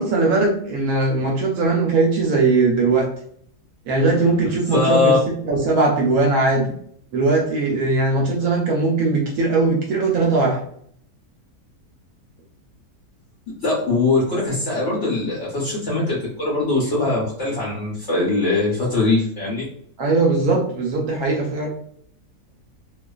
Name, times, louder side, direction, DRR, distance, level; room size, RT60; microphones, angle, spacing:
voice 1, 0.0-3.1 3.9-6.7 7.1-10.6 20.0-21.7, right 3 dB, 70° right, -1 dB, 1.0 m, -19 dB
voice 2, 4.7-5.2 13.6-19.6, left 3 dB, 55° left, -7 dB, 0.9 m, -21 dB
2.5 x 2.4 x 2.3 m, 0.65 s
omnidirectional pair, 1.7 m